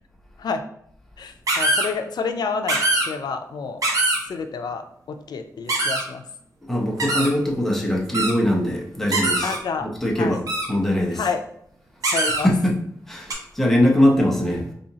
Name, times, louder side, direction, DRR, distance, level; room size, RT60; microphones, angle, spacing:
voice 1, 1.2-2.8 3.1-3.8 4.3-6.2 9.4-9.9 10.2-10.4 11.1-11.4 12.1-12.5, left 5 dB, 80° left, 7 dB, 0.4 m, -29 dB
sound 1, 1.5-1.9 2.7-3.1 3.8-4.2 5.7-6.0 7.0-7.3 8.1-8.3 9.1-9.6 10.5-10.7 12.0-12.4 13.3-13.4, right 2 dB, 55° right, 0.8 m, -22 dB
voice 2, 6.7-10.4 10.7-11.3 12.4-12.8 13.1-14.7, left 1 dB, 5° left, -2 dB, 0.7 m, -21 dB
4.2 x 2.7 x 2.8 m, 0.69 s
wide cardioid pair, 150°, 7 cm